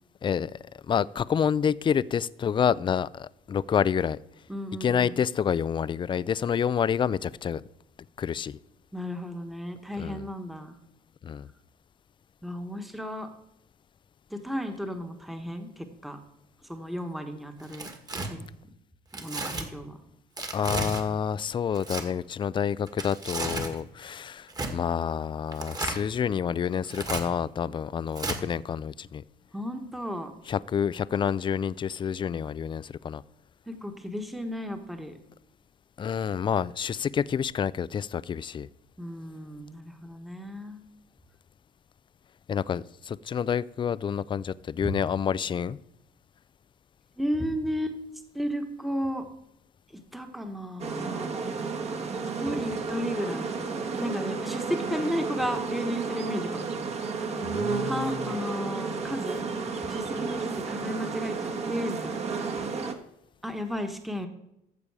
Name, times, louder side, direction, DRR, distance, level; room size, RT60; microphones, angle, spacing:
voice 1, 0.2-0.6 0.9-4.2 4.8-7.6 8.2-8.6 10.0-10.2 11.2-11.5 20.5-29.2 30.5-33.2 36.0-38.7 42.5-45.8 57.4-58.0, left 7 dB, 30° left, 19 dB, 0.4 m, -28 dB
voice 2, 4.5-5.2 8.9-10.8 12.4-13.3 14.3-16.2 16.7-17.9 18.2-18.5 19.1-20.0 29.5-30.4 33.7-35.2 39.0-40.8 44.8-44.9 47.2-48.0 48.3-49.3 49.9-51.7 52.4-53.6 54.0-56.7 57.8-59.4 59.8-62.2 63.4-64.3, equal, ahead, 5 dB, 1.3 m, -34 dB
Tearing, 17.6-18.3 19.1-19.7 20.4-21.0 21.7-22.0 22.9-23.8 24.5-24.7 25.5-26.0 26.8-27.2 28.2-28.4, right 2 dB, 25° right, 1.7 m, -33 dB
sound 1, 50.8-62.9, right 4 dB, 40° right, 1.5 m, -32 dB
14.5 x 6.9 x 4.8 m, 0.81 s
cardioid pair, 110°, 17 cm